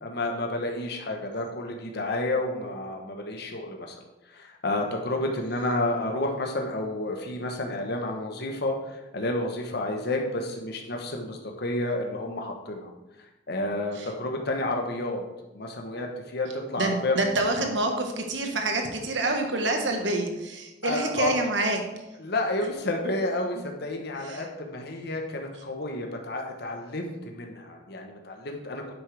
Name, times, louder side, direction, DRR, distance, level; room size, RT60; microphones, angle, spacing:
voice 1, 0.0-4.0 4.3-12.9 13.5-15.2 15.5-17.2 17.6-17.7 20.8-21.3 22.2-28.8, left 2 dB, 60° left, 2 dB, 1.1 m, -30 dB
voice 2, 16.8-21.8 23.6-23.7 24.2-24.5, right 2 dB, 80° right, 3 dB, 1.4 m, -27 dB
9.8 x 8.0 x 3.4 m, 1.0 s
head